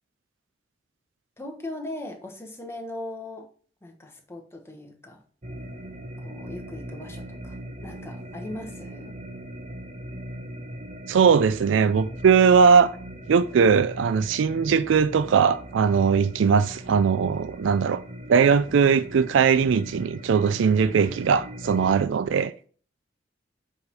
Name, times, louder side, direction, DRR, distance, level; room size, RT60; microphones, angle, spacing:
voice 1, 1.4-3.5 3.8-5.2 6.2-9.2 21.9-22.0, left 1 dB, 15° left, 1.3 m, -39 dB
sound 1, 5.4-22.0, right 1 dB, 40° right, 0.9 m, -40 dB
voice 2, 11.1-13.0 13.3-18.0 18.3-22.5, right 6 dB, 85° right, 0.4 m, -20 dB
7.9 x 3.6 x 5.9 m
head